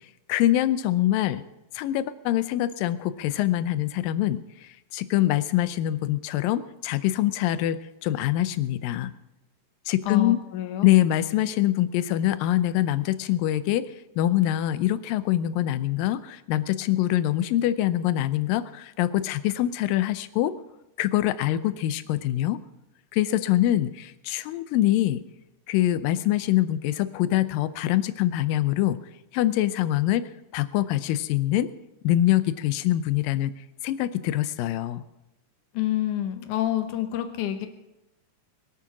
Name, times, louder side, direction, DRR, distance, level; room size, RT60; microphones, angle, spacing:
voice 1, 0.3-1.4 1.7-9.1 9.9-10.4 10.8-13.9 14.2-20.6 21.0-22.6 23.1-25.2 25.7-29.0 29.3-31.7 32.0-33.5 33.8-35.0, left 13 dB, 90° left, 14 dB, 2.4 m, -24 dB
voice 2, 10.1-10.9 35.7-37.7, left 11 dB, 70° left, 7 dB, 2.5 m, -28 dB
22.0 x 8.8 x 6.0 m, 0.93 s
omnidirectional pair, 3.9 m